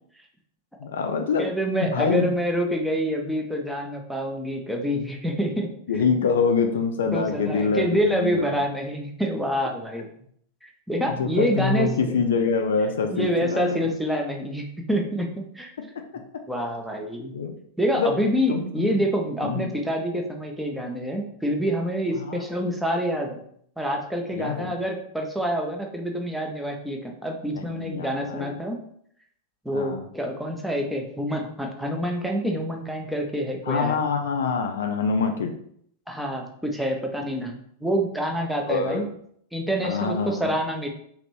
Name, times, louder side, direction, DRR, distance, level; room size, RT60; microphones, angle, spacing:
voice 1, 0.8-1.5 1.9-2.3 5.9-8.6 11.2-14.0 16.0-16.2 17.3-17.6 18.0-18.1 18.5-19.0 19.4-19.8 22.1-22.5 24.3-24.8 27.5-28.6 29.7-30.1 33.6-35.5 38.6-39.0 39.8-40.5, left 5 dB, 65° left, 5 dB, 0.3 m, -25 dB
voice 2, 1.4-5.7 7.1-10.1 10.6-11.9 13.1-15.7 16.5-17.3 17.8-23.4 23.8-28.8 29.6-34.0 36.1-39.1 39.5-40.9, equal, ahead, 1 dB, 0.5 m, -27 dB
3.1 x 2.5 x 3.1 m, 0.66 s
figure-of-eight pair, 90°, 0 cm